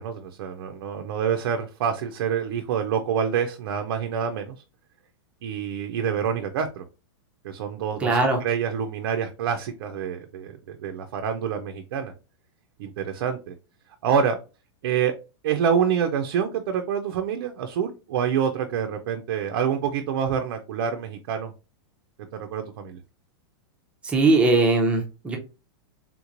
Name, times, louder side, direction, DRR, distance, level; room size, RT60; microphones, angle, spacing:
voice 1, 0.0-4.6 5.4-6.8 7.4-12.1 12.8-13.5 14.0-14.4 14.8-15.2 15.4-21.5 22.3-23.0, right 7 dB, 60° right, 5 dB, 0.5 m, -27 dB
voice 2, 8.0-8.4 24.0-25.4, right 2 dB, 10° right, 1 dB, 0.5 m, -20 dB
3.5 x 3.0 x 2.5 m, 0.31 s
supercardioid pair, 165°, 14 cm